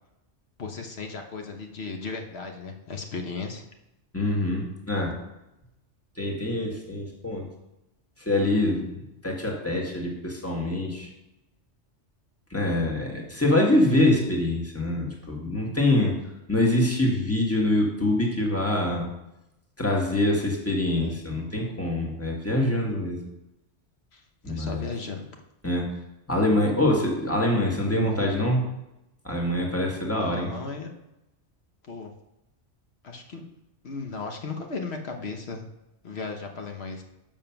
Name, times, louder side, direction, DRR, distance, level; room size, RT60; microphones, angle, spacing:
voice 1, 0.6-3.6 21.0-21.2 24.1-25.2 30.2-30.9 31.8-32.1 33.0-33.4 33.8-35.6 36.0-37.0, left 4 dB, 65° left, 4 dB, 1.2 m, -36 dB
voice 2, 4.1-5.1 6.2-7.5 8.2-11.1 12.5-16.2 16.5-19.1 19.8-23.2 24.4-24.9 25.6-25.8 26.3-28.6 29.2-30.5, left 1 dB, 10° left, -1 dB, 1.6 m, -25 dB
7.1 x 5.5 x 5.8 m, 0.92 s
omnidirectional pair, 1.2 m